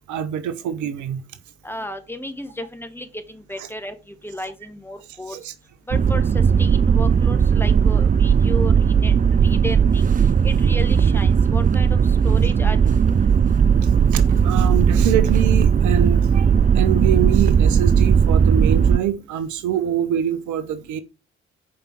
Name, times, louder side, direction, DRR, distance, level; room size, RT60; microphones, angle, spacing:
voice 1, 0.1-1.2 3.6-3.7 5.1-5.5 13.8-21.0, right 9 dB, 65° right, 0.9 m, -25 dB
voice 2, 1.6-4.0 4.2-5.4 5.9-6.2 6.6-9.1 9.4-10.1 10.4-12.8, left 1 dB, 5° left, 1.7 m, -33 dB
sound 1, 5.9-19.0, right 7 dB, 25° right, 0.5 m, -17 dB
6.9 x 5.1 x 6.0 m
hypercardioid pair, 45°, 32 cm